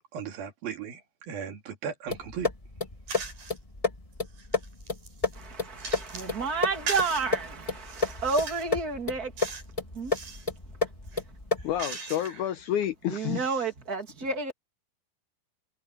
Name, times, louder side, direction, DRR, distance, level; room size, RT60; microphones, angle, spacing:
voice 1, 0.1-2.5, right 7 dB, 80° right, 4.5 m, -37 dB
sound 1, 2.1-11.8, left 3 dB, 25° left, 0.6 m, -32 dB
sound 2, 3.1-3.6 4.1-6.4 6.9-7.3 7.8-8.7 9.4-9.7 10.0-10.5 11.0-12.5, right 5 dB, 60° right, 6.5 m, -39 dB
voice 2, 5.3-9.6 9.9-10.4 10.6-10.8 11.2-11.3 13.1-14.5, right 4 dB, 30° right, 2.7 m, -31 dB
voice 3, 11.6-13.4, left 11 dB, 75° left, 1.9 m, -29 dB
omnidirectional pair, 4.1 m